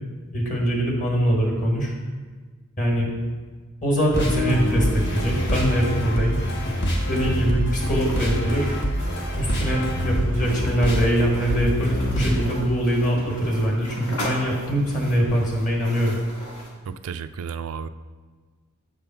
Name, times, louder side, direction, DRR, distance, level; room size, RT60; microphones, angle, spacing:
voice 1, 0.3-1.9 2.8-3.1 3.8-6.4 7.1-8.7 9.4-16.2, equal, 35° left, -1 dB, 1.4 m, -23 dB
sound 1, 4.1-12.5, equal, 50° left, 1.1 m, -25 dB
sound 2, 7.9-16.8, equal, 85° left, 1.5 m, -38 dB
voice 2, 16.9-17.9, right 6 dB, 75° right, 13 dB, 0.3 m, -32 dB
7.6 x 3.5 x 5.8 m, 1.5 s
head